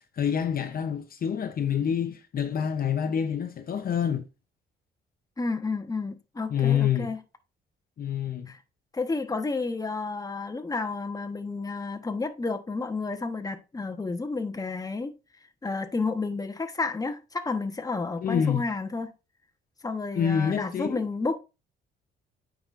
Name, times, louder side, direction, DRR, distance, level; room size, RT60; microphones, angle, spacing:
voice 1, 0.0-4.2 6.5-7.1 8.0-8.5 18.2-18.7 20.2-21.0, left 8 dB, 50° left, 0.7 m, -27 dB
voice 2, 5.4-7.2 8.5-8.6 8.9-15.1 15.6-19.1 19.8-21.4, left 3 dB, 20° left, 1.0 m, -31 dB
8.7 x 4.9 x 2.5 m
cardioid pair, 90°, 20 cm